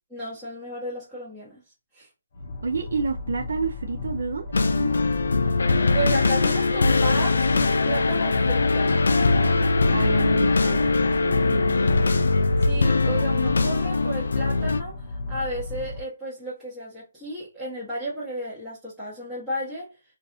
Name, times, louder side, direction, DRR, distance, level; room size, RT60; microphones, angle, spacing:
voice 1, 0.1-1.6 1.9-2.1 5.9-9.0 12.6-19.9, right 1 dB, 5° right, 1.1 m, -33 dB
sound 1, 2.3-16.0, left 2 dB, 45° left, 0.6 m, -34 dB
voice 2, 2.6-4.9 9.9-12.5, right 4 dB, 70° right, 0.5 m, -30 dB
sound 2, 4.5-14.8, left 3 dB, 85° left, 0.4 m, -21 dB
3.2 x 2.5 x 2.6 m
hypercardioid pair, 170°, 0 cm